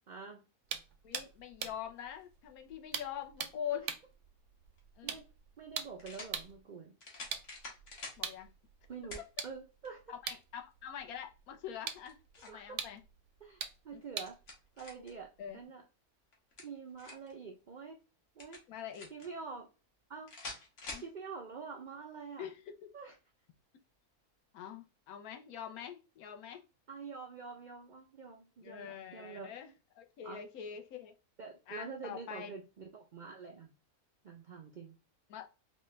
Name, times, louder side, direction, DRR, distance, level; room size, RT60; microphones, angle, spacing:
voice 1, 0.1-0.4 3.7-3.8 5.0-5.2 5.6-6.9 8.9-10.0 12.5-12.8 13.4-14.4 14.8-15.3 15.5-15.8 16.6-18.0 18.4-18.6 19.1-19.7 20.1-20.3 21.0-22.5 22.9-23.2 26.9-29.5 30.2-30.5 31.4-33.7 34.2-34.9, right 5 dB, 90° right, 0.4 m, -46 dB
sound 1, 0.6-6.6 7.2-15.6, right 8 dB, 65° right, 0.8 m, -45 dB
voice 2, 1.0-3.9 5.0-5.2 8.2-8.5 10.1-13.0 13.9-14.0 15.4-15.6 18.7-19.1 20.9-21.0 22.4-22.9 24.5-26.6 28.6-31.1 31.7-32.5 35.3-35.5, left 9 dB, 80° left, 1.2 m, -44 dB
sound 2, 4.7-4.8 6.0-6.3 7.0-8.2 9.1-9.3 9.8-9.9 11.8-12.6 14.0-15.1 16.3-17.3 18.4-19.3 20.3-21.1, left 2 dB, 55° left, 1.4 m, -47 dB
4.2 x 2.2 x 3.1 m
omnidirectional pair, 1.5 m